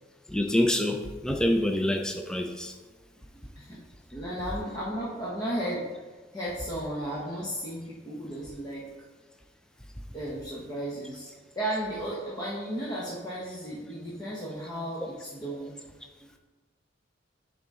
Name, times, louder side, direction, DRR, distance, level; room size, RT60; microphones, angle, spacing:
voice 1, 0.3-2.7, left 1 dB, 5° left, 3 dB, 0.4 m, -26 dB
voice 2, 4.1-5.9 6.3-8.8 10.1-15.7, right 1 dB, 20° left, -7 dB, 1.0 m, -34 dB
10.5 x 3.9 x 3.7 m, 1.3 s
head